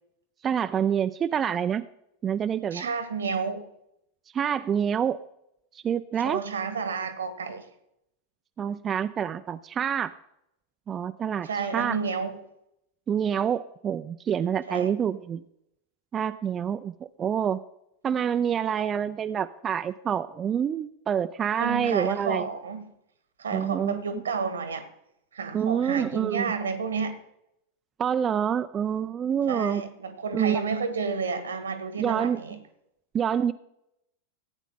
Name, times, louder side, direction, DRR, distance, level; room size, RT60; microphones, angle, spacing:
voice 1, 0.4-1.8 2.2-2.9 4.3-5.2 5.7-6.4 8.6-10.1 10.9-11.5 11.7-12.0 13.1-15.4 16.1-17.6 18.0-22.5 23.5-24.0 25.5-26.5 28.0-29.8 30.3-30.6 32.0-32.4 33.1-33.5, right 8 dB, 30° right, 10 dB, 0.5 m, -27 dB
voice 2, 2.7-3.6 6.2-7.7 11.4-12.4 14.7-14.9 21.6-22.9 23.4-24.9 25.3-27.2 29.5-32.6, right 5 dB, 80° right, 11 dB, 1.5 m, -31 dB
15.5 x 9.1 x 3.8 m, 0.79 s
figure-of-eight pair, 90°, 0 cm